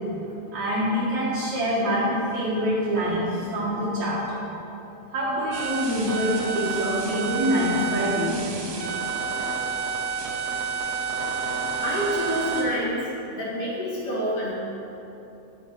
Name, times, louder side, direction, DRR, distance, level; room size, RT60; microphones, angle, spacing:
voice 1, 0.5-4.4 5.1-8.9, equal, 60° right, -6 dB, 2.0 m, -25 dB
sound 1, 5.5-12.6, right 5 dB, 75° right, 2.5 m, -29 dB
voice 2, 11.8-13.0 13.3-14.5, equal, 40° left, -9 dB, 2.5 m, -27 dB
12.0 x 4.8 x 5.9 m, 3.0 s
omnidirectional pair, 5.2 m